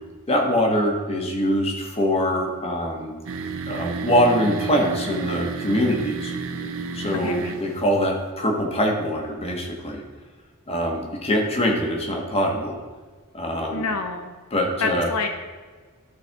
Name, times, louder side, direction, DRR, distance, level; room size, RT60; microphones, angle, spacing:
voice 1, 0.3-3.1 3.7-6.3 6.9-10.0 10.7-12.8 13.3-13.9 14.5-15.1, equal, 25° left, 1 dB, 1.3 m, -23 dB
sound 1, 3.3-7.9, right 4 dB, 65° right, 0.8 m, -31 dB
voice 2, 7.2-7.6 13.7-14.3 14.8-15.3, left 4 dB, 75° left, 5 dB, 0.7 m, -27 dB
13.0 x 4.4 x 3.5 m, 1.5 s
head